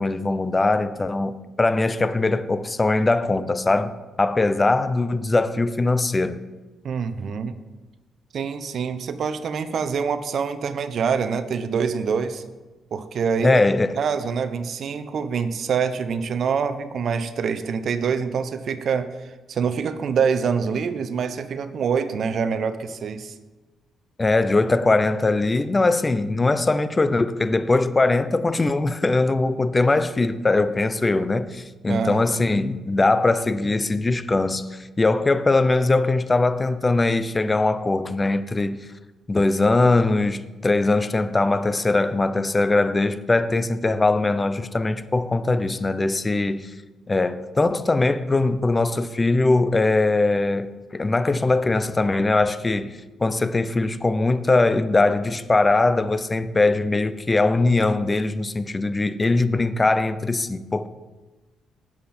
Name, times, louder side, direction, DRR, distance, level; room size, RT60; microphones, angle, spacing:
voice 1, 0.0-3.9 4.2-6.4 13.4-14.0 24.2-38.8 39.3-46.7 47.1-60.9, left 2 dB, 25° left, 0.8 m, -21 dB
voice 2, 6.8-7.6 8.3-12.4 12.9-13.6 13.9-23.3 31.9-32.3, right 6 dB, 60° right, 1.0 m, -25 dB
18.5 x 7.5 x 4.4 m
cardioid pair, 90°, 0 cm